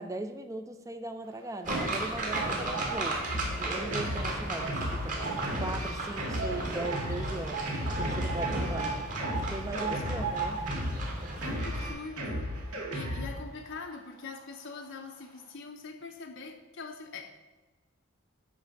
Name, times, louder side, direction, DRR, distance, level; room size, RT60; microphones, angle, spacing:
voice 1, 0.0-3.2 3.6-5.2 5.6-8.9 9.4-10.6, right 2 dB, 15° right, 8 dB, 0.5 m, -39 dB
sound 1, 1.5-3.5 3.9-4.1 4.6-5.7 6.0-6.1 6.4-13.4 13.7-13.9 14.7-14.8 15.2-15.3, right 5 dB, 65° right, 1.2 m, -38 dB
sound 2, 1.7-11.9, right 2 dB, 35° right, 1.6 m, -35 dB
Drum kit, 3.3-13.4, equal, 85° right, 2.1 m, -35 dB
voice 2, 9.9-10.3 11.4-17.4, left 4 dB, 55° left, 3 dB, 0.6 m, -43 dB
9.7 x 3.3 x 6.4 m, 1.2 s
head